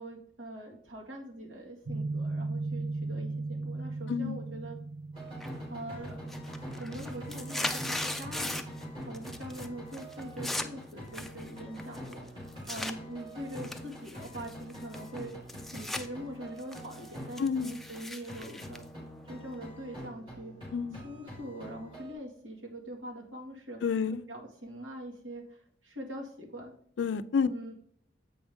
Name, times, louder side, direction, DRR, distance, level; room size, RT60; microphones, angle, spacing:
voice 1, 0.0-4.8 5.7-6.3 6.8-15.5 15.7-18.8 19.3-20.6 20.9-26.7 27.4-27.7, right 1 dB, 85° right, -1 dB, 1.9 m, -43 dB
sound 1, 1.9-11.6, right 3 dB, 65° right, 1.1 m, -39 dB
sound 2, 5.1-18.0 18.3-22.1, equal, 25° right, 2.7 m, -45 dB
sound 3, 5.4-5.8 6.1-8.8 9.1-9.7 9.9-13.0 13.5-16.1 16.4-19.6, left 1 dB, ahead, 0.4 m, -39 dB
voice 2, 17.4-17.7 20.7-21.0 23.8-24.2 27.0-27.5, left 6 dB, 70° left, 14 dB, 0.4 m, -29 dB
7.8 x 5.2 x 3.5 m, 0.63 s
head